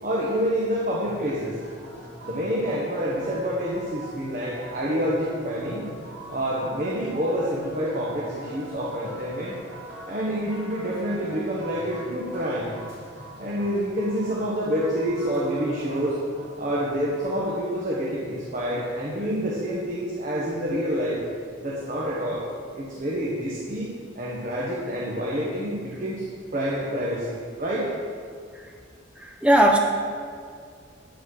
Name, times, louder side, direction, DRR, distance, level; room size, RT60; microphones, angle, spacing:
voice 1, 0.0-1.6 2.2-5.9 6.3-9.5 10.1-12.7 13.4-16.2 16.6-21.2 21.6-22.4 22.7-26.2 26.5-27.9, equal, 45° right, -5 dB, 1.3 m, -27 dB
sound 1, 1.0-17.4, right 1 dB, 65° right, 2.3 m, -43 dB
voice 2, 29.2-29.8, right 1 dB, 5° right, 1 dB, 0.6 m, -18 dB
8.4 x 8.3 x 4.8 m, 2.1 s
head